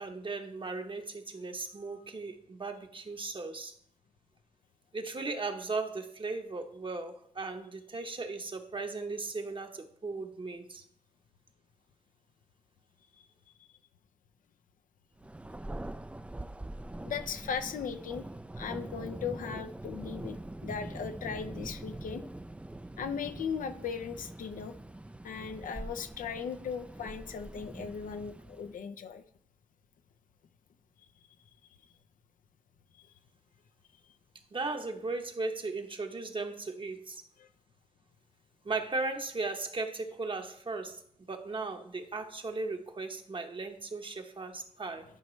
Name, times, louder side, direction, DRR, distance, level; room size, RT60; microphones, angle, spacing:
voice 1, 0.0-3.7 4.9-10.8 34.5-37.2 38.6-41.0 41.3-45.0, right 3 dB, 40° right, 5 dB, 1.0 m, -37 dB
Thunder, 15.2-28.8, right 1 dB, 10° right, 0.3 m, -44 dB
voice 2, 17.1-18.3 18.6-20.4 20.6-22.2 23.0-24.7 25.2-29.2 37.4-37.5, left 6 dB, 80° left, 9 dB, 0.6 m, -37 dB
11.0 x 5.3 x 3.2 m, 0.67 s
cardioid pair, 75°, 14 cm